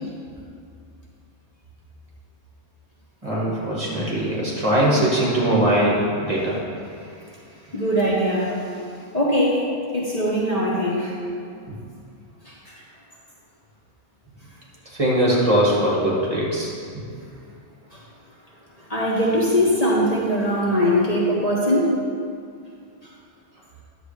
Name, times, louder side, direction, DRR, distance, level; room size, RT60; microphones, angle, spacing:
voice 1, 3.2-6.6 14.9-16.7 16.9-17.1, right 1 dB, 30° right, -6 dB, 1.8 m, -21 dB
voice 2, 7.7-8.8 9.1-9.7 9.9-11.2 12.4-12.8 17.9-18.0 18.9-22.0, equal, 35° left, -5 dB, 1.1 m, -21 dB
10.5 x 7.3 x 3.3 m, 2.3 s
omnidirectional pair, 1.1 m